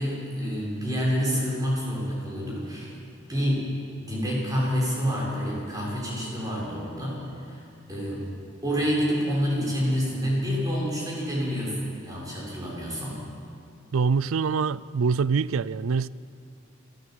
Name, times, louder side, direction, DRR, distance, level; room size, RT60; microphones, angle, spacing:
voice 1, 0.0-3.0 3.3-3.7 4.0-8.2 8.6-13.2, equal, 20° right, 6.4 m, -28 dB
voice 2, 13.9-16.1, right 5 dB, 85° right, 0.4 m, -24 dB
27.0 x 13.5 x 7.9 m
head